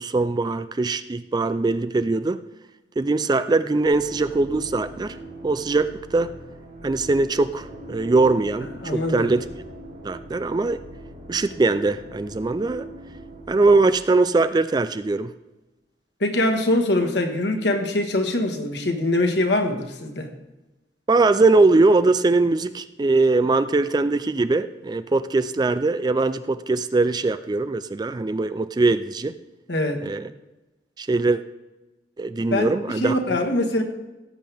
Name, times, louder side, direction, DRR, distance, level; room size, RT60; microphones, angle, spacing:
voice 1, 0.0-2.4 3.0-5.2 5.4-6.3 6.8-9.4 10.0-10.8 11.3-12.9 13.5-15.3 21.1-29.3 30.0-30.3 31.0-31.4 32.2-33.2, right 3 dB, 20° right, 13 dB, 0.3 m, -21 dB
sound 1, 3.8-14.6, right 2 dB, 60° right, 3.6 m, -41 dB
voice 2, 8.8-9.3 16.2-20.3 29.7-30.0 32.5-33.8, left 1 dB, 65° left, 5 dB, 1.5 m, -23 dB
17.0 x 7.6 x 3.5 m, 1.1 s
head